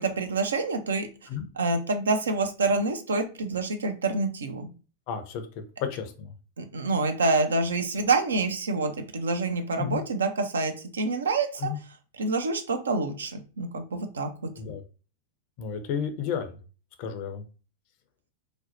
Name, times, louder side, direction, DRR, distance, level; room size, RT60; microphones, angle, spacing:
voice 1, 0.0-1.1 1.6-4.7 6.6-11.7 12.2-14.3, right 3 dB, 70° right, 6 dB, 0.4 m, -27 dB
voice 2, 5.1-6.3 9.8-10.0 11.6-11.8 14.6-14.8 15.6-16.6 17.0-17.4, left 7 dB, 45° left, 7 dB, 0.4 m, -32 dB
2.6 x 2.0 x 2.6 m, 0.35 s
figure-of-eight pair, 90°, 0 cm